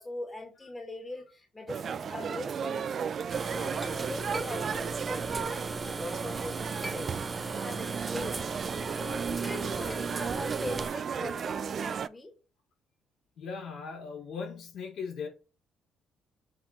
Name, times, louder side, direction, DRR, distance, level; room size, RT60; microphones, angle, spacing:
voice 1, 0.0-3.1 3.5-12.3, left 2 dB, 20° left, 2.2 m, -41 dB
sound 1, 1.7-12.1, right 7 dB, 50° right, 0.3 m, -35 dB
sound 2, 3.3-10.9, right 3 dB, 25° right, 0.8 m, -37 dB
Chink clink, 3.8-6.1 6.6-7.6 8.0-12.1, equal, ahead, 2.1 m, -46 dB
voice 2, 13.3-15.3, left 5 dB, 70° left, 4.2 m, -38 dB
7.5 x 3.6 x 4.3 m
cardioid pair, 100°, 0 cm